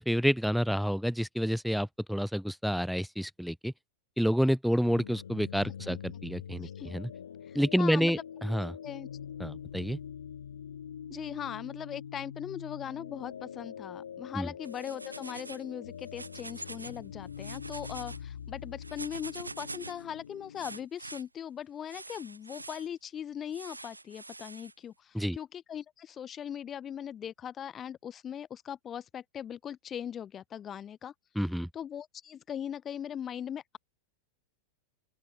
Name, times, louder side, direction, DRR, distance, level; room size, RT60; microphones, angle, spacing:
voice 1, 0.0-3.7 4.2-7.1 7.5-8.8 9.4-10.0 14.3-14.5 25.1-25.4 31.4-31.7, equal, ahead, 0.5 m, -29 dB
sound 1, 4.8-20.9, left 8 dB, 65° left, 4.9 m, -44 dB
voice 2, 7.5-8.2 8.8-9.1 11.1-31.1 31.7-33.8, left 9 dB, 25° left, 1.3 m, -40 dB
sound 2, 14.6-15.7 16.0-17.0 17.3-18.2 18.8-20.0 20.6-21.2 21.9-22.9 23.5-24.7, right 3 dB, 80° right, 3.8 m, -45 dB
open air
figure-of-eight pair, 90°, 0 cm